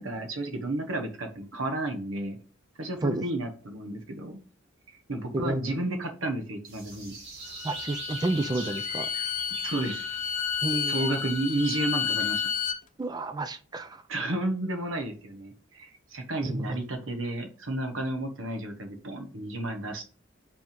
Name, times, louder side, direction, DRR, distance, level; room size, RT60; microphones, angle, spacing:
voice 1, 0.0-2.4 2.8-4.4 4.9-7.1 9.6-10.2 10.9-12.5 14.1-20.0, right 1 dB, 90° right, 1.2 m, -32 dB
voice 2, 5.3-5.8 7.6-9.1 10.6-11.1 13.0-14.0 16.4-16.8, right 2 dB, 20° right, 0.4 m, -30 dB
sound 1, 6.7-12.7, right 4 dB, 55° right, 2.1 m, -44 dB
Bowed string instrument, 7.4-12.8, left 7 dB, 40° left, 0.8 m, -31 dB
5.4 x 3.5 x 5.1 m
head